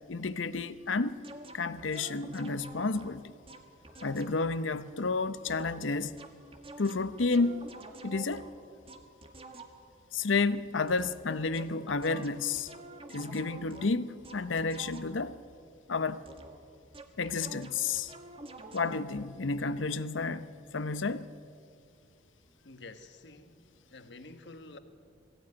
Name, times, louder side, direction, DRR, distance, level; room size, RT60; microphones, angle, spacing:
voice 1, 0.1-1.2 1.5-3.3 4.0-6.2 6.8-7.7 8.0-8.5 10.1-12.7 13.1-15.4 15.9-16.2 17.2-18.1 18.7-21.3, left 4 dB, 80° left, 0.8 m, -31 dB
sound 1, 1.2-4.5 5.5-10.0 10.9-11.3 11.5-15.4 16.3-19.1, right 2 dB, 30° right, 1.7 m, -49 dB
voice 2, 22.6-24.8, left 2 dB, 65° left, 1.5 m, -50 dB
21.5 x 16.0 x 9.7 m
head